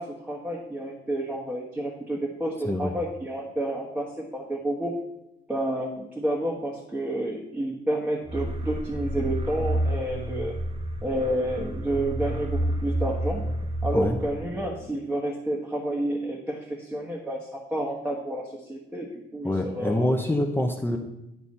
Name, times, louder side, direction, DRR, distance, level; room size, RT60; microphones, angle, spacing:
voice 1, 0.0-4.9 5.5-10.5 11.0-13.4 13.8-20.1, right 1 dB, 5° right, -6 dB, 1.4 m, -30 dB
sound 1, 8.3-14.8, right 1 dB, 30° right, 0.9 m, -30 dB
voice 2, 19.4-21.0, left 1 dB, 10° left, 3 dB, 0.8 m, -25 dB
10.5 x 4.0 x 4.2 m, 0.88 s
cardioid pair, 90°, 20 cm